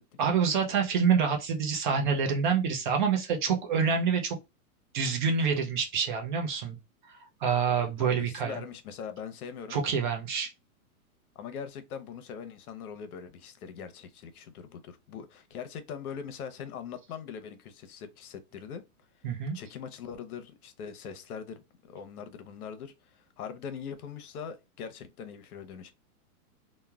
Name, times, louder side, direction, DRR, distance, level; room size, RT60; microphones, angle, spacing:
voice 1, 0.2-4.4 4.9-6.8 7.4-8.6 9.7-10.5 19.2-19.6, right 6 dB, 35° right, 0.5 m, -27 dB
voice 2, 8.1-9.8 11.4-18.8 19.5-25.9, left 7 dB, 85° left, 0.8 m, -41 dB
3.1 x 2.1 x 2.3 m
supercardioid pair, 155°, 44 cm